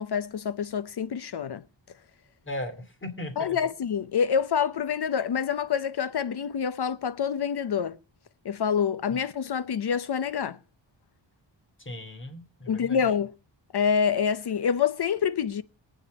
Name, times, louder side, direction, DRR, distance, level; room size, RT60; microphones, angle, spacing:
voice 1, 0.0-1.6 3.4-8.0 8.4-10.6 12.7-13.3 13.7-15.6, left 7 dB, 60° left, 0.8 m, -27 dB
voice 2, 2.4-3.6 11.8-13.0, left 1 dB, 25° left, 2.6 m, -37 dB
23.5 x 8.9 x 5.2 m
wide cardioid pair, 170°, 45 cm